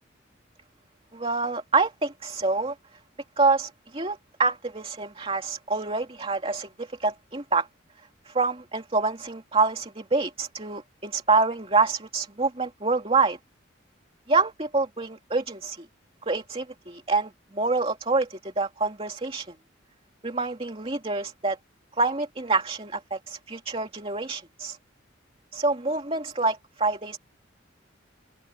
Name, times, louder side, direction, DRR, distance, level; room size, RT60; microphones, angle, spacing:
voice 1, 1.1-2.7 3.4-7.7 8.3-13.4 14.3-15.8 16.3-19.5 20.2-21.6 22.0-24.8 25.5-27.2, right 3 dB, 30° right, 2.7 m, -26 dB
open air
head